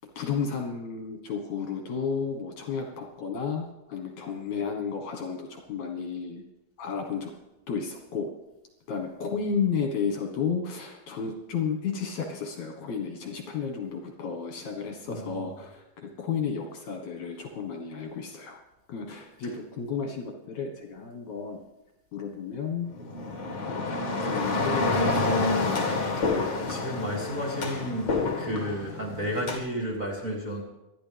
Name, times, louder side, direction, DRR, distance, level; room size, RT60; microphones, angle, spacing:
voice 1, 0.2-6.4 6.8-7.3 7.7-8.3 8.9-18.6 18.9-21.6 22.1-22.9 23.6-25.8, left 6 dB, 60° left, 2 dB, 2.5 m, -32 dB
voice 2, 15.1-15.5 26.2-26.4 26.7-28.1 28.4-30.6, equal, 25° right, -4 dB, 2.3 m, -32 dB
sound 1, 22.9-29.6, left 3 dB, 40° left, 1.9 m, -28 dB
26.0 x 11.5 x 3.5 m, 0.96 s
omnidirectional pair, 4.2 m